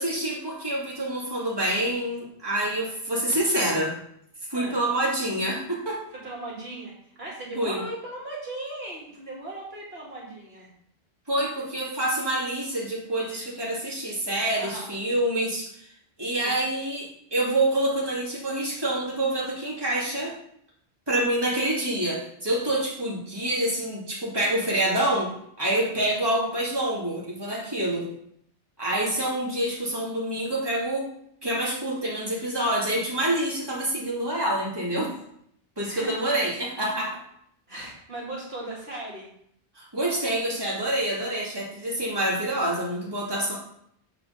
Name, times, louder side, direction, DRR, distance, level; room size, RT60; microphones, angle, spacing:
voice 1, 0.0-3.9 4.5-6.0 7.5-7.8 11.3-15.9 16.2-20.3 21.1-25.3 25.6-28.1 28.8-31.1 31.4-35.1 35.8-37.2 39.7-43.5, right 1 dB, 20° right, -6 dB, 2.4 m, -27 dB
voice 2, 6.1-10.7 14.6-14.9 16.4-16.6 35.9-36.3 37.7-39.3, right 2 dB, 65° right, -4 dB, 2.5 m, -37 dB
8.3 x 4.0 x 6.5 m, 0.70 s
omnidirectional pair, 1.1 m